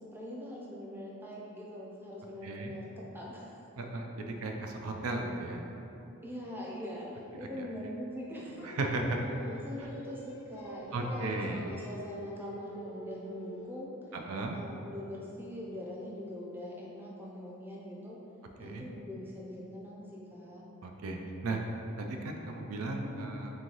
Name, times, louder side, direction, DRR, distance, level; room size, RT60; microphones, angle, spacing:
voice 1, 0.1-3.5 5.9-8.7 9.4-13.9 14.5-18.2 18.6-20.6 23.0-23.3, equal, 10° right, -5 dB, 0.5 m, -43 dB
voice 2, 2.4-2.8 3.8-5.6 7.3-7.5 8.6-9.2 10.9-11.6 14.3-14.6 18.6-18.9 20.8-21.2 21.4-21.6 22.0-23.5, right 2 dB, 85° right, 2 dB, 0.4 m, -35 dB
Singing, 8.6-13.8, left 1 dB, 75° left, 0.4 m, -46 dB
3.6 x 3.1 x 3.8 m, 3.0 s
head